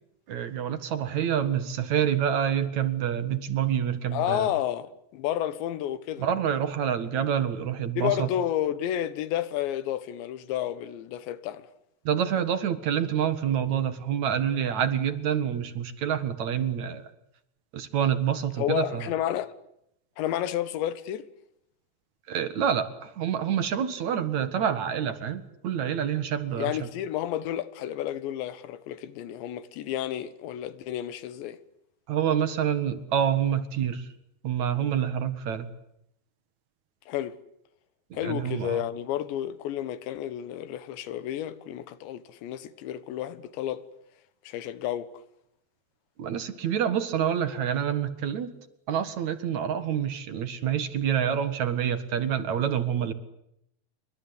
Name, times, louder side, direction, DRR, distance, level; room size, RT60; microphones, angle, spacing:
voice 1, 0.3-4.5 6.2-8.3 12.0-17.0 17.7-19.0 22.3-26.9 32.1-34.1 34.4-35.7 38.2-38.8 46.2-48.5 48.9-53.1, right 9 dB, 55° right, 2.4 m, -27 dB
voice 2, 4.1-6.3 8.0-11.7 18.6-19.5 20.2-21.3 26.5-31.6 37.1-37.4 38.1-43.8 44.5-45.1, left 11 dB, 80° left, 3.7 m, -31 dB
28.5 x 24.0 x 8.4 m
omnidirectional pair, 5.1 m